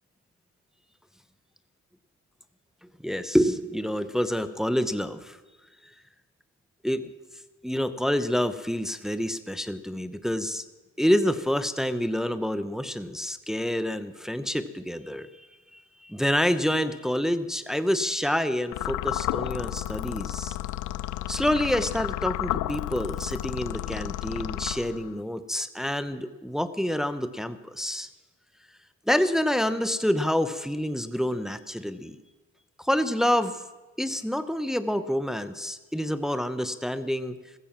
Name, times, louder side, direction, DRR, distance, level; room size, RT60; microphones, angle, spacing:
voice 1, 3.0-5.4 6.8-7.1 7.6-10.6 11.0-20.6 21.3-28.1 29.1-32.2 32.8-33.6 34.0-37.4, equal, ahead, 11 dB, 0.9 m, -27 dB
sound 1, 18.7-25.2, left 14 dB, 80° left, 0.6 m, -32 dB
15.5 x 15.0 x 6.0 m, 1.2 s
cardioid pair, 90°, 30 cm